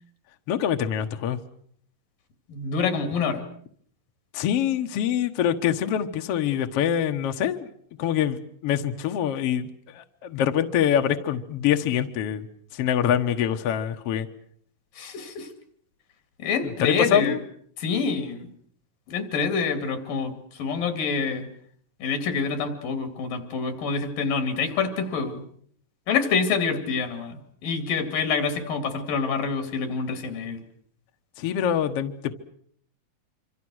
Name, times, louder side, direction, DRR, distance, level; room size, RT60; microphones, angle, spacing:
voice 1, 0.5-1.4 4.3-7.7 8.0-12.5 12.7-14.3 16.6-17.4 31.4-32.3, left 9 dB, 60° left, 6 dB, 1.9 m, -25 dB
voice 2, 2.5-3.4 15.0-15.5 16.4-17.4 17.8-18.5 19.1-21.5 22.0-25.4 26.1-30.6, left 5 dB, 80° left, 7 dB, 4.2 m, -27 dB
26.5 x 26.0 x 6.4 m, 0.63 s
omnidirectional pair, 3.9 m